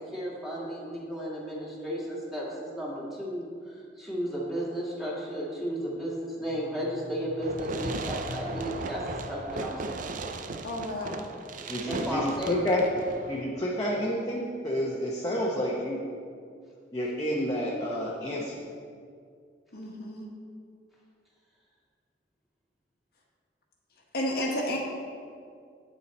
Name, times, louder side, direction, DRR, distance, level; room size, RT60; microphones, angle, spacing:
voice 1, 0.0-9.0 9.3-10.1 11.9-12.6, equal, ahead, -6 dB, 1.9 m, -34 dB
sound 1, 6.3-10.0, equal, 30° right, 0.9 m, -45 dB
Fireworks, 7.4-13.4, right 3 dB, 50° right, 0.5 m, -37 dB
voice 2, 10.6-11.2 19.7-20.3 24.1-24.8, left 1 dB, 60° left, -1 dB, 1.3 m, -31 dB
voice 3, 11.7-12.8 13.3-16.0 16.9-18.6, equal, 20° left, -5 dB, 0.9 m, -30 dB
8.6 x 6.9 x 4.3 m, 2.2 s
head